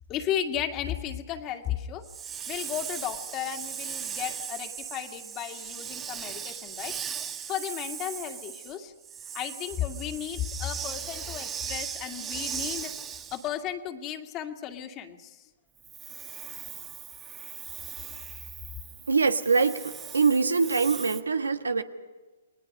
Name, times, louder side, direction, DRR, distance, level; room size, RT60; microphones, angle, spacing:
voice 1, 0.1-2.0 2.5-7.0 7.5-8.9 9.3-12.9 13.3-15.4, left 10 dB, 30° left, 4 dB, 2.3 m, -34 dB
Hiss, 2.0-13.5 15.8-21.2, right 8 dB, 20° right, 1.7 m, -38 dB
voice 2, 19.1-21.8, right 4 dB, 90° right, 9 dB, 1.5 m, -24 dB
30.0 x 20.5 x 5.5 m, 1.2 s
hypercardioid pair, 130°, 0 cm